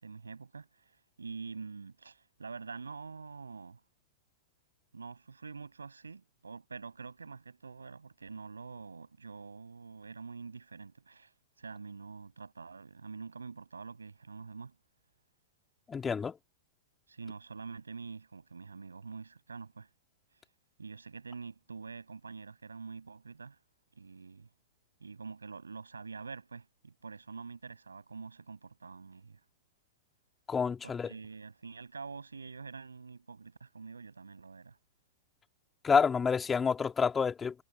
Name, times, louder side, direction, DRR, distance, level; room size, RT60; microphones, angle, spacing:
voice 1, 0.0-3.8 4.9-11.3 11.6-14.7 17.1-19.9 20.8-23.6 23.9-24.5 25.0-29.4 30.8-34.8, right 4 dB, 90° right, 6.7 m, -46 dB
voice 2, 15.9-16.3 30.5-31.1 35.8-37.5, left 6 dB, 20° left, 3.0 m, -28 dB
hypercardioid pair, 105°, 0 cm